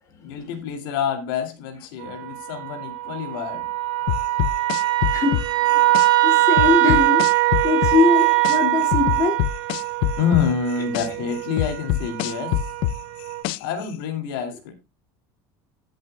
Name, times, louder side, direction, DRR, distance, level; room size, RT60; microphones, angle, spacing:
voice 1, 0.2-3.7 10.2-12.6 13.6-14.7, left 7 dB, 80° left, 2.6 m, -27 dB
sound 1, 2.0-13.4, right 18 dB, 70° right, 5.0 m, -22 dB
sound 2, 4.1-6.1 6.6-8.6 8.9-11.1 11.6-13.8, left 13 dB, 45° left, 0.4 m, -24 dB
voice 2, 5.7-7.2 7.6-9.4, left 4 dB, 25° left, 2.6 m, -22 dB
16.5 x 8.0 x 2.3 m
cardioid pair, 175°, 11 cm